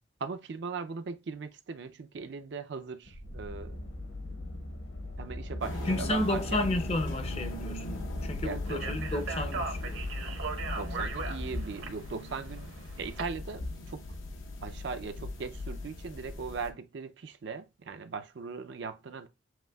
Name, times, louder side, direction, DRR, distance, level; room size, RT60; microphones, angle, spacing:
voice 1, 0.2-3.8 5.2-6.6 8.4-8.8 10.8-12.7 13.0-14.0 14.6-19.3, right 5 dB, 60° right, 0.4 m, -39 dB
sound 1, 3.0-11.6, left 1 dB, 65° left, 1.2 m, -38 dB
sound 2, 5.6-16.7, left 2 dB, 80° left, 0.8 m, -40 dB
voice 2, 5.9-10.0, left 1 dB, 30° left, 0.5 m, -32 dB
Speech, 8.7-13.2, right 4 dB, 80° right, 1.1 m, -38 dB
7.7 x 2.7 x 2.2 m
head